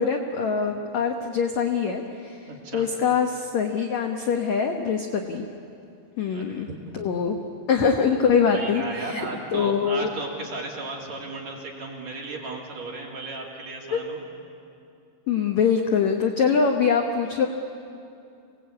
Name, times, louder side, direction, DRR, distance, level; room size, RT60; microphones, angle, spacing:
voice 1, 0.0-5.5 6.2-6.7 6.9-7.4 7.7-10.1 13.9-14.0 15.3-17.5, left 6 dB, 70° left, 4 dB, 1.7 m, -24 dB
voice 2, 2.5-2.8 6.3-6.8 8.5-14.2, right 2 dB, 45° right, -2 dB, 3.5 m, -35 dB
27.5 x 18.0 x 8.6 m, 2.5 s
omnidirectional pair, 4.7 m